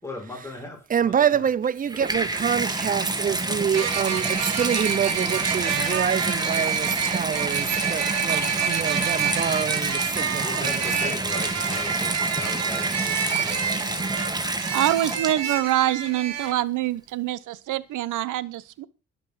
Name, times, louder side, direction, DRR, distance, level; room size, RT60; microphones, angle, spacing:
voice 1, 0.0-1.5 10.4-14.2, left 2 dB, 10° left, 5.7 m, -39 dB
voice 2, 0.9-11.1, right 8 dB, 30° right, 0.5 m, -26 dB
Water tap faucet / Bathtub (filling or washing), 1.6-15.7 16.5-16.6, right 2 dB, 15° right, 1.6 m, -28 dB
sound 1, 2.1-2.2 3.7-16.5, right 7 dB, 60° right, 2.5 m, -28 dB
voice 3, 14.7-18.9, right 13 dB, 80° right, 0.8 m, -25 dB
11.5 x 6.0 x 6.9 m
cardioid pair, 90°, 30 cm